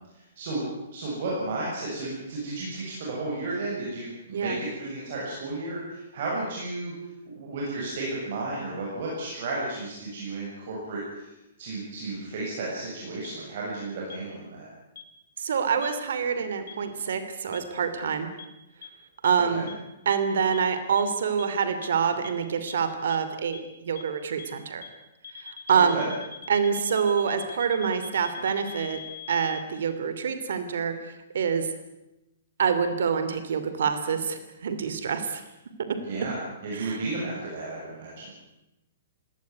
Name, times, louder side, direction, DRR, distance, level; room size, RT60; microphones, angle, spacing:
voice 1, 0.1-0.6 0.9-6.9 7.2-14.7 19.5-19.7 25.9-26.1 35.9-38.4, right 2 dB, 45° right, -4 dB, 7.5 m, -33 dB
voice 2, 4.3-4.6 15.4-18.3 19.2-19.7 20.1-24.8 25.3-26.0 26.5-29.0 29.3-31.7 32.6-35.4 35.9-36.0 36.7-37.0, right 6 dB, 65° right, 10 dB, 2.6 m, -26 dB
sound 1, 13.2-13.3 14.1-14.2 15.0-15.1 15.8-15.9 16.7-16.8 17.5-17.6 18.4-18.5 18.8-18.9 19.2-19.3 19.7-19.8 20.1-20.2 20.5-20.6 21.0-21.1 21.4-21.5 21.8-21.9 22.2-22.3 22.7-22.8 23.1-23.2 23.5-23.6 24.0-24.1 24.4-24.5 24.8-24.9 25.2-29.6, left 7 dB, 70° left, 3.1 m, -41 dB
21.0 x 18.0 x 9.7 m, 0.95 s
hypercardioid pair, 175°, 0 cm